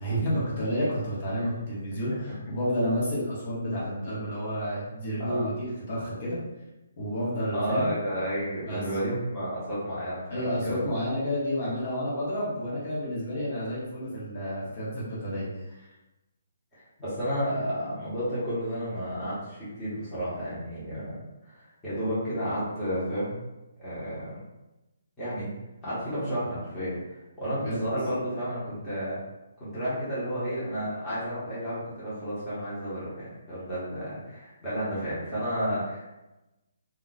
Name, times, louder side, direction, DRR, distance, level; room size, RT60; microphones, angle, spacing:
voice 1, 0.0-6.4 7.0-7.9 8.6-8.8 10.3-15.5 15.8-15.9 27.6-27.8, equal, 35° left, -6 dB, 0.9 m, -30 dB
voice 2, 7.5-10.8 16.7-21.2 21.5-23.4 23.8-24.3 25.2-25.5 25.8-29.2 29.6-36.2, equal, 5° left, -13 dB, 0.9 m, -32 dB
2.3 x 2.3 x 3.8 m, 0.99 s
hypercardioid pair, 175°, 0 cm